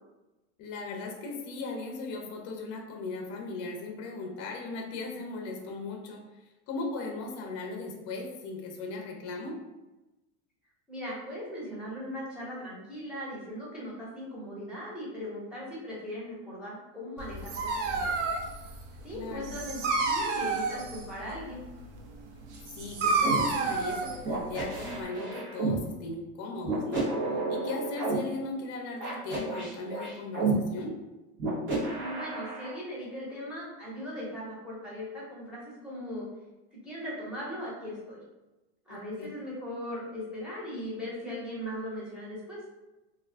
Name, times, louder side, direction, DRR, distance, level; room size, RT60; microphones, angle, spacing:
voice 1, 0.6-6.2 6.7-9.6 19.1-19.5 22.7-27.1 27.5-30.9 38.9-39.3, left 3 dB, 45° left, 2 dB, 0.6 m, -38 dB
voice 2, 10.9-18.2 19.0-21.6 31.9-36.3 36.7-38.2 38.8-42.6, equal, 5° right, -8 dB, 1.0 m, -39 dB
Dog, 17.2-25.0, right 4 dB, 90° right, 0.6 m, -31 dB
sound 1, 23.2-23.4 24.3-25.8 26.6-28.2 29.0-30.5 31.4-32.7, right 4 dB, 30° right, 0.8 m, -31 dB
2.4 x 2.2 x 3.3 m, 1.0 s
supercardioid pair, 140°, 35 cm